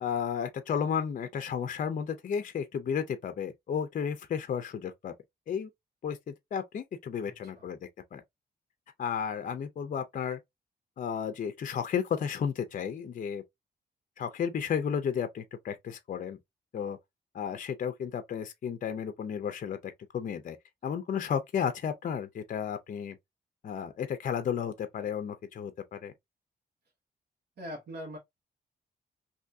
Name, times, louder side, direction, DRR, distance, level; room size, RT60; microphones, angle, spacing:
voice 1, 0.0-5.1 5.5-5.7 6.0-7.8 8.1-8.2 9.0-10.4 11.0-13.4 14.2-16.4 16.7-17.0 17.3-20.6 20.8-23.2 23.6-26.1, left 7 dB, 50° left, 0.5 m, -33 dB
voice 2, 7.2-7.7 27.6-28.2, equal, 70° right, 1.2 m, -42 dB
3.4 x 2.7 x 2.6 m
wide cardioid pair, 165°, 17 cm